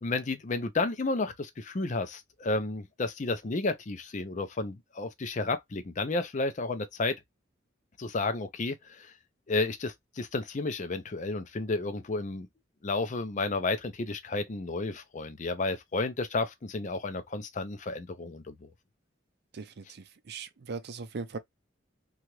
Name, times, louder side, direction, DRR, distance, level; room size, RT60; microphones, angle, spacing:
voice 1, 0.0-7.2 8.0-9.1 9.5-12.5 12.8-18.7, left 3 dB, 40° left, 0.5 m, -32 dB
voice 2, 19.5-21.4, right 4 dB, 55° right, 0.5 m, -39 dB
2.8 x 2.4 x 3.0 m
head